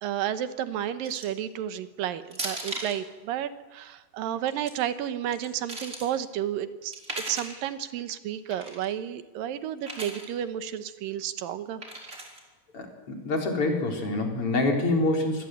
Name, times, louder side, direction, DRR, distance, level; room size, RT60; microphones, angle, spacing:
voice 1, 0.0-7.0 7.3-11.8, right 10 dB, 75° right, 11 dB, 2.7 m, -32 dB
sound 1, 1.0-1.4 2.3-3.0 4.3-4.7 5.3-6.1 6.9-7.6 8.5-8.9 9.8-10.3 11.8-12.4, right 2 dB, 20° right, 4.2 m, -37 dB
voice 2, 12.7-15.5, left 2 dB, 40° left, 2 dB, 4.8 m, -26 dB
25.5 x 20.0 x 9.2 m, 1.2 s
omnidirectional pair, 4.2 m